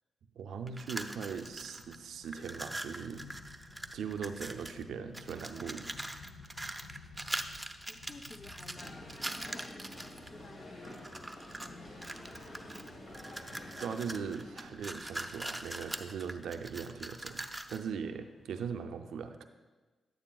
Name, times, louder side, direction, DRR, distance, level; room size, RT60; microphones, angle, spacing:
voice 1, 0.4-3.3 3.9-5.9 13.8-17.4 17.7-19.4, right 6 dB, 80° right, 8 dB, 0.4 m, -40 dB
sound 1, 0.7-2.0 2.2-4.8 5.1-10.3 10.8-11.7 12.0-17.9, right 1 dB, 15° right, 0.6 m, -42 dB
sound 2, 0.8-18.6, left 4 dB, 90° left, 0.5 m, -57 dB
voice 2, 7.9-9.9 10.3-12.9, left 3 dB, 40° left, 7 dB, 0.7 m, -54 dB
sound 3, 8.7-14.9, left 1 dB, 60° left, 1.9 m, -49 dB
9.8 x 8.9 x 2.3 m, 1.3 s
supercardioid pair, 50°, 0 cm